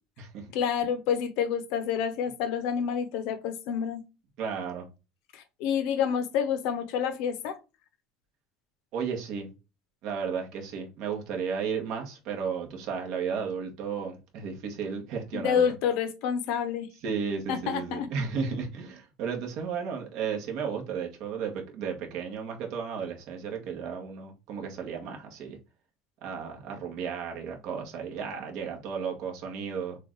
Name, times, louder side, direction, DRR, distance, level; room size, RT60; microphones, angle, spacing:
voice 1, 0.5-4.0 5.3-7.6 15.3-16.9 17.5-18.1, left 8 dB, 55° left, 0.8 m, -28 dB
voice 2, 4.4-4.8 8.9-9.5 10.0-15.7 17.0-25.6 26.2-30.0, right 6 dB, 45° right, 1.4 m, -34 dB
6.5 x 2.5 x 3.1 m
cardioid pair, 180°, 0 cm